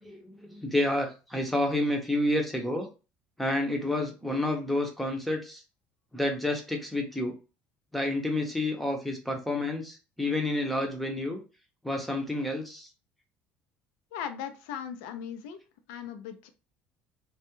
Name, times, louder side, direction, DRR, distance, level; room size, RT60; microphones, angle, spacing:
voice 1, 0.0-2.9 3.4-5.6 6.1-7.3 7.9-11.4 11.8-12.9, left 1 dB, ahead, 2 dB, 0.6 m, -29 dB
voice 2, 14.1-15.6 15.9-16.5, left 8 dB, 90° left, 8 dB, 0.4 m, -38 dB
2.2 x 2.1 x 3.0 m, 0.32 s
cardioid pair, 110°, 5 cm